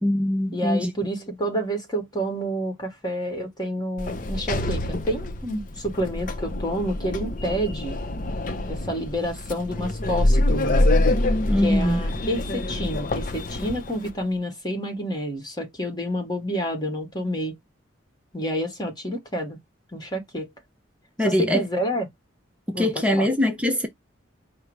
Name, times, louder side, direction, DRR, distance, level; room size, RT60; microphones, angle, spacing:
voice 1, 0.0-0.9 11.5-12.0 21.2-21.6 22.8-23.9, left 1 dB, 5° right, 0.6 m, -22 dB
voice 2, 0.5-8.0 8.7-10.9 11.6-17.5 18.3-19.6 19.9-20.5 21.2-22.1 22.7-23.3, equal, 20° left, 1.3 m, -29 dB
Sliding door, 4.0-14.1, left 1 dB, 45° left, 0.6 m, -25 dB
4.6 x 2.1 x 4.6 m
head